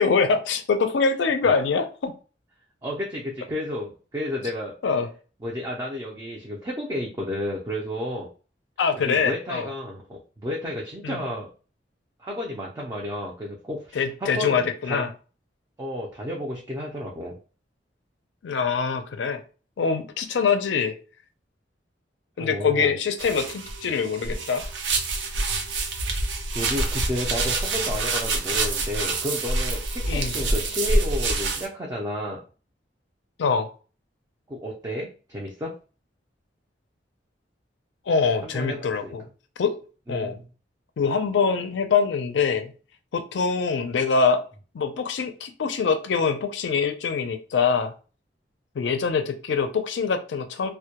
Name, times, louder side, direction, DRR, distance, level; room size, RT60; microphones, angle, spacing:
voice 1, 0.0-2.1 4.8-5.1 8.8-9.7 11.0-11.2 14.0-15.1 18.4-19.4 19.8-20.9 22.4-24.6 30.1-30.4 33.4-33.7 38.1-39.2 39.6-39.8 40.1-40.4 41.0-42.7 43.1-44.4 44.7-47.9 48.8-50.7, left 5 dB, 75° left, 8 dB, 0.4 m, -24 dB
voice 2, 2.8-4.7 5.4-8.3 8.9-11.5 12.2-15.0 15.8-17.4 22.4-22.9 26.5-32.4 34.5-35.7 38.4-39.1 40.1-40.5, left 1 dB, 20° right, -3 dB, 0.4 m, -32 dB
sound 1, 23.2-31.7, right 2 dB, 75° right, 0.5 m, -26 dB
2.1 x 2.1 x 2.8 m, 0.36 s
head